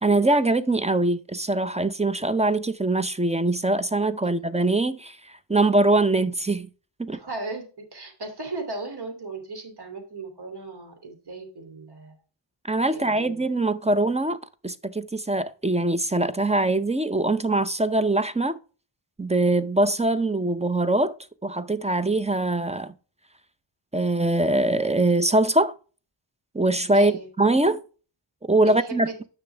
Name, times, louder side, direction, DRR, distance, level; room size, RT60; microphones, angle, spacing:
voice 1, 0.0-6.7 7.0-7.2 12.6-18.6 19.2-21.2 21.4-22.9 23.9-25.7 26.5-27.1 27.4-27.8 28.5-29.1, right 2 dB, 15° right, 0.6 m, -22 dB
voice 2, 7.1-12.2 12.9-13.5 26.9-27.3 28.6-29.1, right 3 dB, 55° right, 2.9 m, -36 dB
10.5 x 6.1 x 3.3 m
wide cardioid pair, 105°, 45 cm